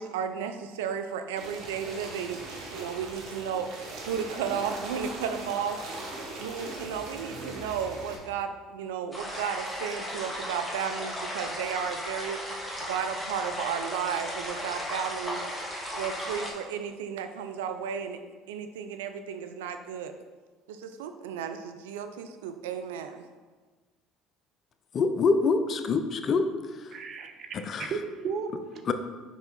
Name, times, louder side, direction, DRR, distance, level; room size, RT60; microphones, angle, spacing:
voice 1, 0.0-3.7 4.1-5.8 6.4-12.4 12.8-18.2 18.5-20.1 20.7-23.3, right 7 dB, 80° right, 8 dB, 0.4 m, -34 dB
sound 1, 1.4-8.2, right 2 dB, 65° right, 1.3 m, -40 dB
sound 2, 9.1-16.5, equal, 5° left, 1.9 m, -35 dB
voice 2, 24.9-26.5 27.7-27.9 28.9-29.0, left 4 dB, 45° left, 9 dB, 0.5 m, -25 dB
voice 3, 26.9-28.8, right 5 dB, 50° right, 6 dB, 0.7 m, -35 dB
5.3 x 4.6 x 3.9 m, 1.4 s
hypercardioid pair, 70°, 0 cm